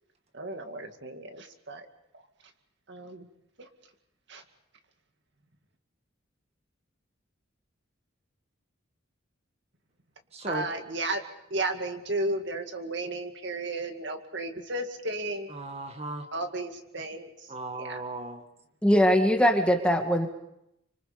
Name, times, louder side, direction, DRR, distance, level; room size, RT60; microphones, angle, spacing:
voice 1, 0.3-1.9 2.1-2.2 2.9-3.3 3.6-3.7 4.3-4.4 10.5-11.2 11.5-15.6 16.3-17.5 17.8-18.0, right 2 dB, 55° right, 6 dB, 2.2 m, -34 dB
voice 2, 10.3-10.7 15.5-16.3 17.5-18.4, right 2 dB, 30° right, 6 dB, 1.8 m, -36 dB
voice 3, 18.8-20.3, equal, 5° left, 3 dB, 2.0 m, -21 dB
28.5 x 26.0 x 5.2 m, 0.80 s
head